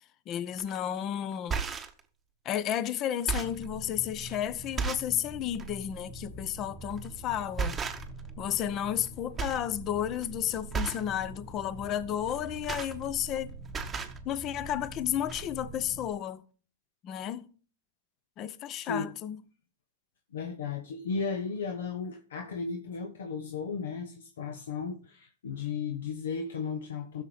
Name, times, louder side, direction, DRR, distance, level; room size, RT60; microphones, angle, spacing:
voice 1, 0.3-1.6 2.4-7.8 8.4-13.6 14.2-16.4 17.0-17.4 18.4-19.4, left 10 dB, 35° left, 0.7 m, -32 dB
sound 1, 0.6-0.8 1.3-2.0 2.7-2.8 3.1-3.7 4.3-4.4 4.8-5.2 5.5-5.7 6.9-7.1 7.6-8.3 8.6-9.1 9.4-9.7 10.0-10.3 10.7-11.1 12.3-13.4 13.6-14.2 15.0-15.1 15.3-15.4, right 5 dB, 15° right, 0.9 m, -34 dB
sound 2, 3.4-16.1, right 2 dB, 10° left, 2.1 m, -45 dB
voice 2, 20.3-27.2, left 5 dB, 75° left, 1.0 m, -35 dB
15.5 x 6.5 x 3.3 m
hypercardioid pair, 120°, 0 cm